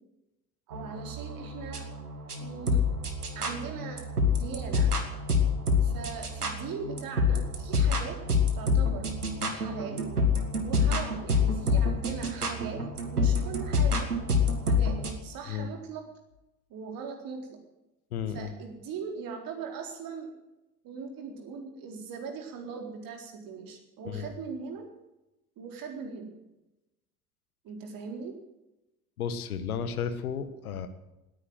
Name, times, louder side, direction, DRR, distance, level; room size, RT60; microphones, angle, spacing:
voice 1, 0.7-1.8 2.4-2.8 3.3-4.9 5.8-8.2 8.5-9.1 9.5-10.1 10.6-14.1 14.7-16.0 16.7-17.5 18.3-20.3 20.8-24.9 25.6-26.3 27.6-28.4, right 5 dB, 50° right, 3 dB, 4.1 m, -40 dB
sound 1, 0.7-15.2, left 4 dB, 85° right, 1.8 m, -27 dB
voice 2, 18.1-18.5 24.0-24.3 29.2-30.9, left 7 dB, 75° left, 10 dB, 1.6 m, -33 dB
18.5 x 9.9 x 7.9 m, 0.95 s
figure-of-eight pair, 65°, 44 cm